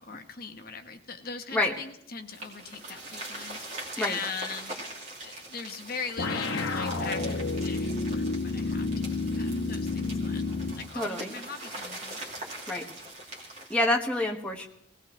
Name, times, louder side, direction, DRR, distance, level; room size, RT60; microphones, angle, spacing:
voice 1, 0.0-4.9 5.2-10.5 10.8-12.5, left 5 dB, 45° left, 6 dB, 1.1 m, -40 dB
sound 1, 2.3-13.8, right 1 dB, 35° right, 2.5 m, -42 dB
sound 2, 6.2-10.9, left 3 dB, 85° left, 1.1 m, -30 dB
voice 2, 10.9-11.3 12.7-12.9 13.7-14.7, left 1 dB, 5° left, 0 dB, 1.3 m, -27 dB
20.0 x 17.0 x 3.2 m, 0.74 s
head